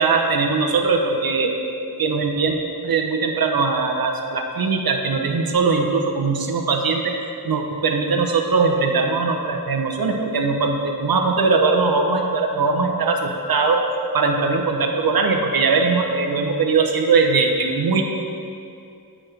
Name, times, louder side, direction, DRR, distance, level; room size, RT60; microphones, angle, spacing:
voice 1, 0.0-1.6 2.0-2.6 2.8-7.2 7.4-13.8 14.1-18.0, right 4 dB, 65° right, 3 dB, 0.8 m, -20 dB
8.6 x 6.1 x 3.3 m, 2.5 s
wide cardioid pair, 85°, 38 cm